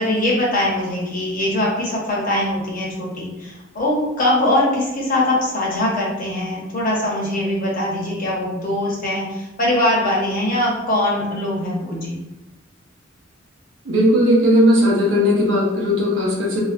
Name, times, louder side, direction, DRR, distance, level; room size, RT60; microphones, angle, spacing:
voice 1, 0.0-12.2, left 1 dB, 45° left, -4 dB, 0.7 m, -22 dB
voice 2, 13.8-16.6, equal, 70° right, -3 dB, 0.7 m, -17 dB
2.4 x 2.1 x 2.4 m, 1.0 s
head